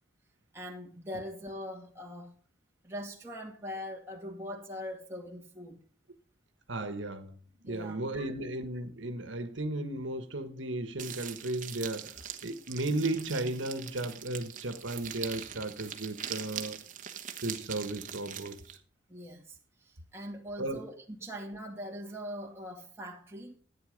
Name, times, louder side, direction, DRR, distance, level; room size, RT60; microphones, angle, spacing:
voice 1, 0.5-2.3 2.8-5.8 7.7-8.3 19.1-23.6, equal, 15° right, 2.3 m, -42 dB
voice 2, 6.7-7.4 7.6-16.8 17.4-18.8 20.6-20.8, right 2 dB, 75° right, 1.4 m, -35 dB
sound 1, 11.0-18.8, right 9 dB, 40° right, 1.2 m, -42 dB
14.0 x 8.8 x 5.1 m
head